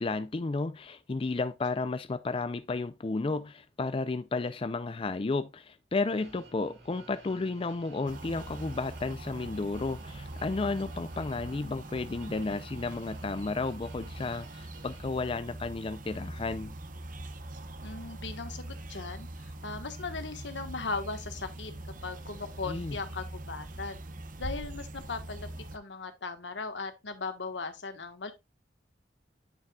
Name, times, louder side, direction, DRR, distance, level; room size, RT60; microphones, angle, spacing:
voice 1, 0.0-16.7 22.7-23.0, left 3 dB, 30° left, 0.4 m, -33 dB
sound 1, 6.1-15.1, right 2 dB, 65° right, 2.5 m, -54 dB
sound 2, 8.1-25.8, right 1 dB, 50° right, 0.9 m, -42 dB
voice 2, 17.8-21.7 22.0-24.0 24.4-28.3, left 4 dB, 85° left, 1.3 m, -38 dB
9.2 x 5.8 x 2.3 m
head